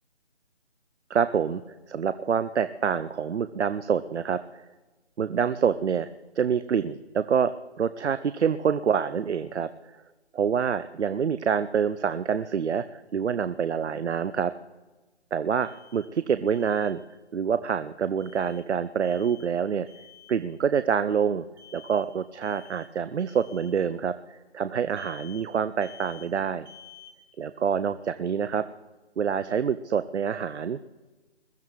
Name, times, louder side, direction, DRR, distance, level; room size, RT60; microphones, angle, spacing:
voice 1, 1.1-1.6 1.9-4.6 5.2-6.1 6.4-9.7 10.3-14.5 15.3-17.0 17.3-19.9 20.3-21.5 21.7-26.7 27.4-28.6 29.2-30.8, right 7 dB, 90° right, 13 dB, 0.6 m, -26 dB
Alarm, 15.6-16.1 16.5-16.9 18.2-18.6 19.0-19.5 19.9-20.4 21.6-22.1 22.4-22.9 23.3-23.7 25.0-25.5 25.8-26.3 26.7-27.1, left 9 dB, 45° left, 2.8 m, -51 dB
21.5 x 14.0 x 3.1 m, 1.2 s
figure-of-eight pair, 170°, 33 cm